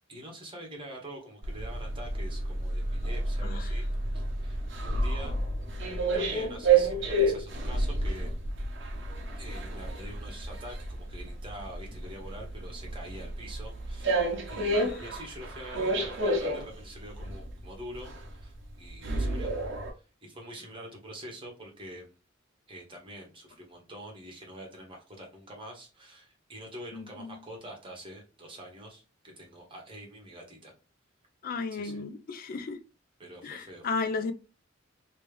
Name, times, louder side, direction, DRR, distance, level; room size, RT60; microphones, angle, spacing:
voice 1, 0.1-5.4 6.1-8.3 9.4-19.5 20.2-22.1 22.7-30.7 31.7-32.0 33.2-34.2, right 1 dB, 25° right, 1.3 m, -45 dB
sound 1, 1.4-19.9, right 2 dB, 65° right, 1.0 m, -30 dB
voice 2, 3.4-3.7 14.7-15.0 26.9-27.3 31.4-32.8 33.4-34.3, left 4 dB, 45° left, 0.4 m, -34 dB
3.2 x 3.0 x 3.2 m
head